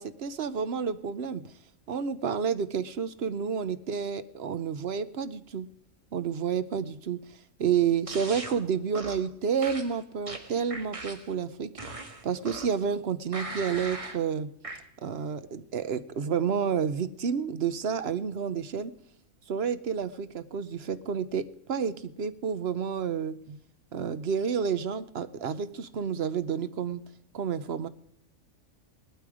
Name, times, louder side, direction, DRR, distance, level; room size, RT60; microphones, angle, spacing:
voice 1, 0.0-1.5 1.9-5.7 6.1-14.5 15.0-18.9 19.5-23.6 23.9-27.0 27.3-27.9, right 7 dB, 55° right, 13 dB, 0.9 m, -30 dB
sound 1, 8.1-8.6 8.9-9.3 9.6-11.3 11.8-12.8 13.3-14.2 14.6-14.8, right 2 dB, 25° right, 1.5 m, -39 dB
18.5 x 12.5 x 4.9 m, 0.72 s
omnidirectional pair, 1.4 m